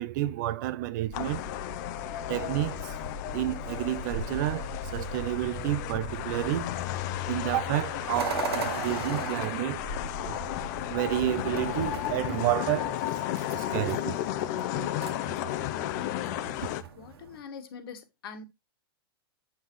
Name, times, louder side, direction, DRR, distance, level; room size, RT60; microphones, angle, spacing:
voice 1, 0.0-1.4 2.3-3.0 3.3-6.7 7.3-9.8 10.2-10.4 10.9-13.0 13.5-14.2 14.7-14.9, right 15 dB, 50° right, 0.6 m, -30 dB
sound 1, 1.1-16.8, left 13 dB, 45° left, 0.7 m, -34 dB
sound 2, 1.1-12.2, left 1 dB, 25° left, 1.6 m, -43 dB
sound 3, 8.1-17.4, right 6 dB, 80° right, 1.8 m, -39 dB
voice 2, 16.9-18.4, left 5 dB, 65° left, 1.6 m, -43 dB
8.1 x 5.7 x 3.1 m
hypercardioid pair, 145°, 13 cm